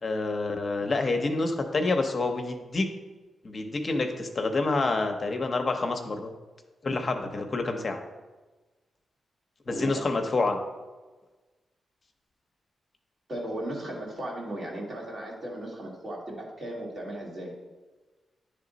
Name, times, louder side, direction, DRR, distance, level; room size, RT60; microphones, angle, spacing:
voice 1, 0.0-2.9 3.4-6.3 6.8-8.0 9.7-10.6, left 3 dB, 45° left, 4 dB, 0.7 m, -28 dB
voice 2, 9.7-10.1 13.3-17.6, right 1 dB, 50° right, -3 dB, 1.9 m, -36 dB
9.7 x 3.3 x 3.9 m, 1.3 s
cardioid pair, 70°, 0 cm